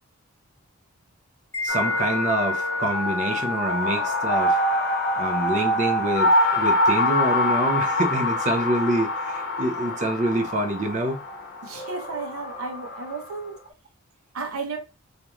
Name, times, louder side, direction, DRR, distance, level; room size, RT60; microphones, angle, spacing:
Wind chime, 1.5-2.9, left 2 dB, 10° left, 0.7 m, -34 dB
voice 1, 1.6-4.6 5.2-11.2, right 1 dB, 30° right, 0.4 m, -26 dB
sound 1, 1.7-13.3, left 1 dB, 40° left, 0.4 m, -25 dB
voice 2, 11.6-13.6 14.3-14.8, right 4 dB, 75° right, 0.7 m, -33 dB
2.9 x 2.5 x 2.2 m
head